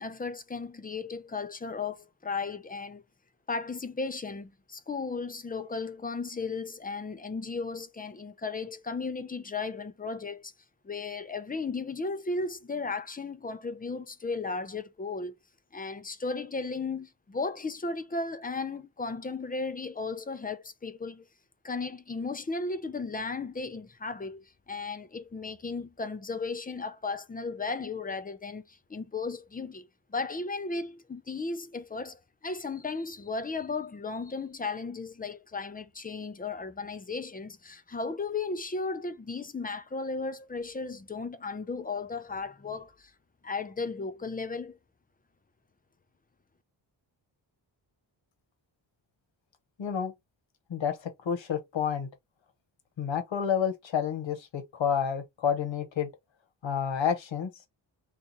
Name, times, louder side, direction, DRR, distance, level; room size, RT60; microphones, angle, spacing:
voice 1, 0.0-3.0 3.5-10.5 10.8-15.4 15.7-21.3 21.6-43.1 43.4-44.8, left 4 dB, 20° left, 0.4 m, -35 dB
voice 2, 49.8-50.1 50.7-52.1 53.0-56.1 56.6-57.5, left 7 dB, 75° left, 1.0 m, -29 dB
2.8 x 2.4 x 3.8 m
wide cardioid pair, 125°, 46 cm